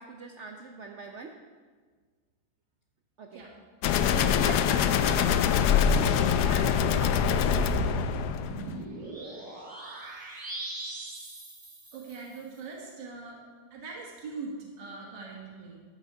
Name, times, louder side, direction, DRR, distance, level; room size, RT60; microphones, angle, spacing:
voice 1, 0.0-1.4 3.2-3.4 4.0-7.4, right 4 dB, 90° right, 3 dB, 0.6 m, -41 dB
sound 1, 3.8-8.7, left 8 dB, 75° left, 1.0 m, -24 dB
sound 2, 6.7-12.5, right 3 dB, 45° right, 2.3 m, -38 dB
voice 2, 11.9-13.4 13.7-15.8, right 4 dB, 65° right, -2 dB, 2.2 m, -41 dB
11.5 x 7.9 x 4.6 m, 1.5 s
omnidirectional pair, 2.1 m